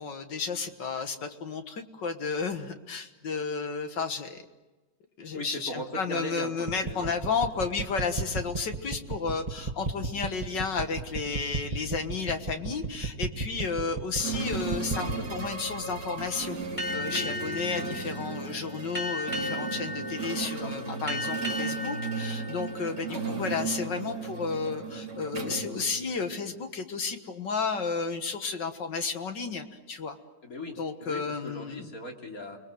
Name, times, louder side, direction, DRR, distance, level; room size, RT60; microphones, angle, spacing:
voice 1, 0.0-4.4 5.2-16.6 16.9-30.2 30.8-31.9, left 5 dB, 65° left, 7 dB, 2.1 m, -32 dB
voice 2, 5.3-7.1 20.4-20.7 21.1-21.2 23.1-23.2 30.4-32.6, left 1 dB, 45° left, 1 dB, 3.2 m, -39 dB
sound 1, 6.7-15.2, right 3 dB, 20° right, 1.8 m, -32 dB
sound 2, 14.2-26.5, right 3 dB, 55° right, 4.0 m, -35 dB
Boat Water vehicle, 16.8-23.8, left 1 dB, 15° left, 2.8 m, -37 dB
30.0 x 21.5 x 7.8 m, 1.2 s
omnidirectional pair, 2.1 m